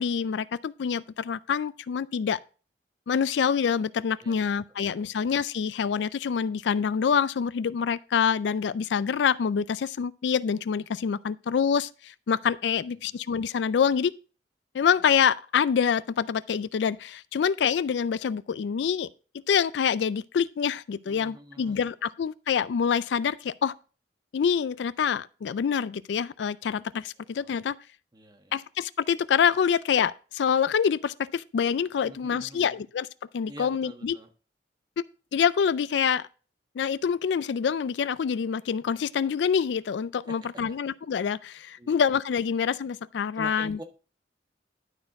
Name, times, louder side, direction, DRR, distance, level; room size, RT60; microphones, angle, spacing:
voice 1, 0.0-2.4 3.1-14.1 14.7-19.1 19.5-23.7 24.3-27.7 28.5-33.1 33.3-34.2 35.3-36.2 36.8-43.8, left 7 dB, 70° left, 0.4 m, -26 dB
voice 2, 4.2-5.1 12.7-13.2 21.0-21.9 26.6-26.7 27.4-27.5 28.1-28.6 31.9-32.8 33.5-34.3 40.3-40.4 40.7-40.8 41.8-42.0 43.3-43.8, right 1 dB, 25° right, 1.3 m, -47 dB
11.5 x 4.4 x 4.6 m
head